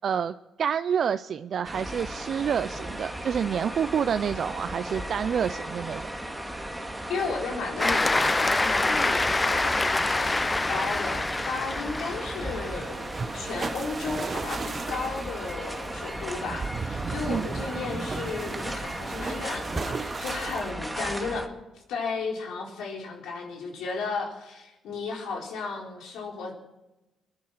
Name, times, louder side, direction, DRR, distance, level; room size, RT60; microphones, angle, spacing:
voice 1, 0.0-6.1 17.3-17.5, right 7 dB, 60° right, 12 dB, 0.5 m, -28 dB
sound 1, 1.6-21.5, right 1 dB, 5° right, 1.9 m, -36 dB
voice 2, 7.1-13.1 13.3-21.5 21.9-26.5, left 4 dB, 85° left, 0 dB, 3.9 m, -34 dB
Cheering / Applause, 7.8-12.7, left 2 dB, 20° left, 0.6 m, -26 dB
sound 2, 8.1-20.7, right 4 dB, 40° right, 1.0 m, -37 dB
22.5 x 10.5 x 6.2 m, 0.99 s
cardioid pair, 90°, 0 cm